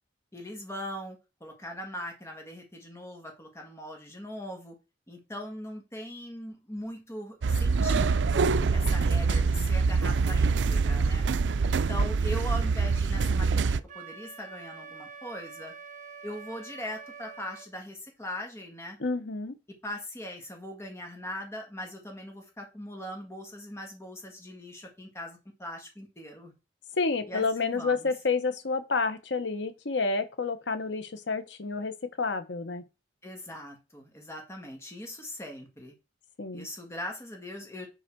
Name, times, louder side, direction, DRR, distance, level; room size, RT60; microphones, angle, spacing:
voice 1, 0.3-4.7 5.1-8.3 8.7-11.2 11.6-15.7 16.2-19.0 19.7-26.5 27.3-28.1 33.2-35.9 36.5-37.9, left 1 dB, 15° left, 1.6 m, -40 dB
sound 1, 7.4-13.8, right 4 dB, 85° right, 0.4 m, -25 dB
Wind instrument woodwind instrument, 13.9-17.7, right 5 dB, 45° right, 1.4 m, -46 dB
voice 2, 19.0-19.5 27.0-32.8 36.4-36.7, left 4 dB, 80° left, 1.0 m, -29 dB
9.8 x 3.9 x 4.6 m
head